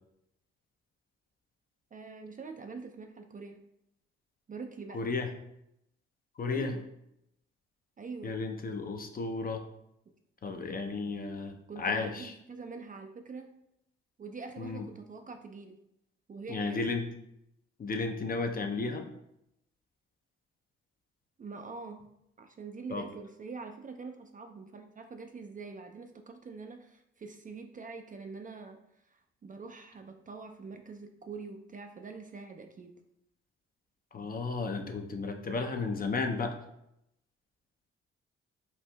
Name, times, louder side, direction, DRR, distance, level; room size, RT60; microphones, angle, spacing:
voice 1, 1.9-3.6 4.5-5.0 6.5-6.8 8.0-8.3 11.7-13.5 14.2-15.8 16.3-17.0 21.4-22.0 22.4-32.9, right 4 dB, 30° right, 5 dB, 0.4 m, -44 dB
voice 2, 4.9-5.3 6.4-6.7 8.2-9.6 10.4-12.3 14.6-14.9 16.5-17.1 17.8-19.1 22.9-23.0 34.1-36.6, left 4 dB, 30° left, 5 dB, 0.5 m, -33 dB
4.4 x 2.4 x 2.2 m, 0.80 s
hypercardioid pair, 45°, 30 cm